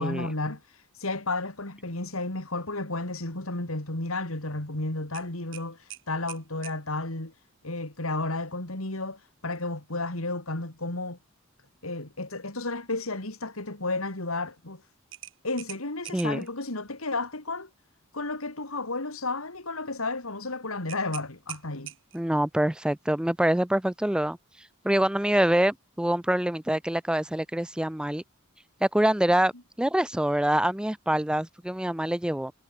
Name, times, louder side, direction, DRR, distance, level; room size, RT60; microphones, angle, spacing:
voice 1, 0.0-11.2 11.8-14.8 15.4-17.7 18.1-21.9, left 2 dB, 85° left, 3.7 m, -32 dB
sound 1, 5.1-6.8 9.4-9.7 10.1-10.2 15.1-16.5 20.9-22.3, right 14 dB, 65° right, 2.1 m, -44 dB
voice 2, 16.1-16.4 22.1-24.4 24.8-28.2 28.8-29.5 29.8-32.5, right 1 dB, 5° right, 0.4 m, -25 dB
head